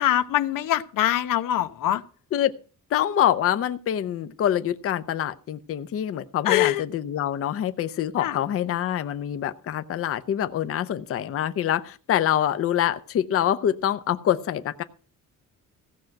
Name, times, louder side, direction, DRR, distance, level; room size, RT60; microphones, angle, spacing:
voice 1, 0.0-2.0 6.4-6.8 8.2-8.4, left 12 dB, 90° left, 11 dB, 1.0 m, -23 dB
voice 2, 2.9-14.8, left 10 dB, 45° left, 11 dB, 0.7 m, -25 dB
15.5 x 5.9 x 7.8 m, 0.39 s
cardioid pair, 180°, 32 cm